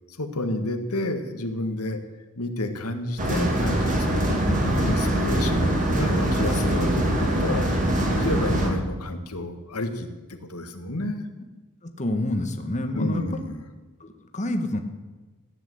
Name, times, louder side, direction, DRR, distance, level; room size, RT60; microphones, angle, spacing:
voice 1, 0.1-2.0 2.3-4.3 4.8-7.7 8.1-11.3 12.9-13.6, left 1 dB, 75° left, 7 dB, 1.7 m, -30 dB
sound 1, 3.2-8.7, right 1 dB, 35° right, 2.8 m, -23 dB
voice 2, 11.8-13.4 14.0-14.8, left 1 dB, 35° left, 5 dB, 1.4 m, -28 dB
15.0 x 10.0 x 7.8 m, 1.2 s
head